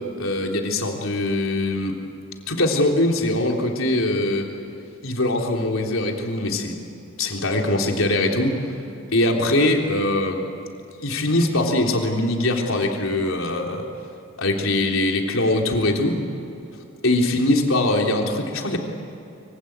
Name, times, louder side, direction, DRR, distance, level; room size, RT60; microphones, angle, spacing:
voice 1, 0.2-2.0 2.5-4.5 5.0-6.8 7.2-8.6 9.1-10.5 11.0-13.8 14.4-16.2 17.0-18.8, left 1 dB, 80° left, 1 dB, 3.6 m, -22 dB
25.5 x 25.0 x 9.0 m, 2.8 s
head